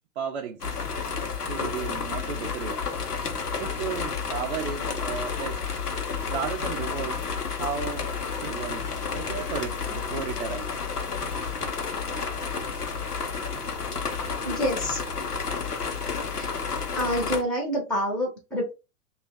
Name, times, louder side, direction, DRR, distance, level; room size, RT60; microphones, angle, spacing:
voice 1, 0.2-0.8 1.5-2.8 3.6-5.6 6.3-7.2 7.5-8.9 9.1-10.7, right 7 dB, 45° right, 0.5 m, -34 dB
sound 1, 0.6-17.4, left 5 dB, 85° left, 0.8 m, -31 dB
voice 2, 14.4-15.0 16.3-16.5 17.0-18.7, equal, ahead, 0.7 m, -27 dB
2.8 x 2.3 x 3.5 m
figure-of-eight pair, 105°, 45 cm